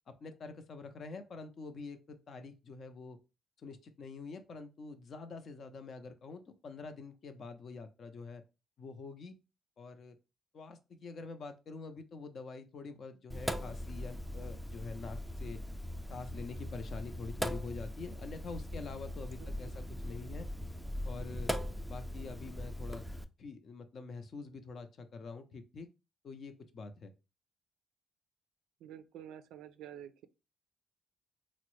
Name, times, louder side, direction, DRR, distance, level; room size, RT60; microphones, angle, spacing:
voice 1, 0.1-3.2 3.6-8.4 8.8-9.4 9.8-10.2 10.5-15.6 16.1-20.5 21.0-21.5 21.9-23.0 23.4-25.9 26.2-27.1, left 4 dB, 55° left, 0.5 m, -46 dB
Sink (filling or washing), 13.3-23.2, equal, ahead, 0.3 m, -40 dB
voice 2, 19.4-19.8 28.8-30.3, right 10 dB, 90° right, 0.3 m, -50 dB
3.5 x 2.0 x 3.0 m
cardioid pair, 90°, 0 cm